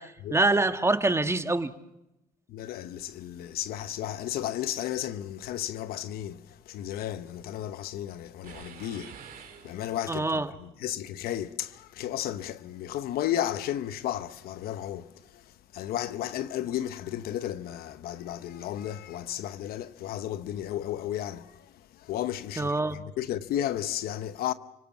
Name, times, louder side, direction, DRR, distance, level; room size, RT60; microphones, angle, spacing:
voice 1, 0.0-1.7 10.1-10.5 22.6-23.0, right 2 dB, 15° right, 1.5 m, -25 dB
voice 2, 2.5-9.1 9.6-15.4 15.7-24.5, left 11 dB, 80° left, 1.0 m, -33 dB
sound 1, 8.4-10.3, right 8 dB, 65° right, 2.5 m, -47 dB
29.5 x 18.0 x 7.4 m
cardioid pair, 80°, 16 cm